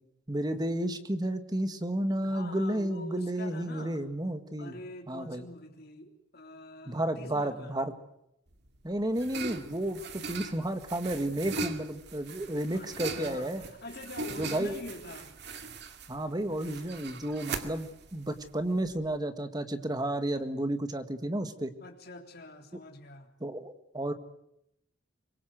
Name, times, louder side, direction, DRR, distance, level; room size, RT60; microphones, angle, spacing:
voice 1, 0.3-4.8 5.1-5.5 6.9-7.9 8.8-10.0 10.3-13.6 14.4-14.8 16.1-21.7 23.4-24.1, right 1 dB, 20° right, 9 dB, 1.7 m, -32 dB
voice 2, 2.2-4.0 4.6-7.8 12.7-15.3 21.8-23.3, left 2 dB, 55° left, 4 dB, 3.6 m, -45 dB
sound 1, 8.5-19.1, right 4 dB, 60° right, 2.2 m, -40 dB
25.0 x 22.0 x 7.9 m, 0.79 s
head